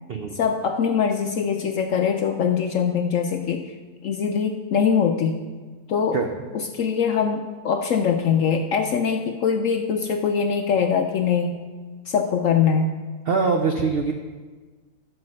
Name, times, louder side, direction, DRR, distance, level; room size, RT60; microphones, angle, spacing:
voice 1, 0.3-3.7 4.0-5.4 5.9-6.2 6.5-11.6 12.1-12.9, left 6 dB, 70° left, 5 dB, 0.7 m, -22 dB
voice 2, 13.3-14.1, right 4 dB, 85° right, 4 dB, 0.5 m, -22 dB
11.5 x 4.7 x 6.3 m, 1.4 s
omnidirectional pair, 1.8 m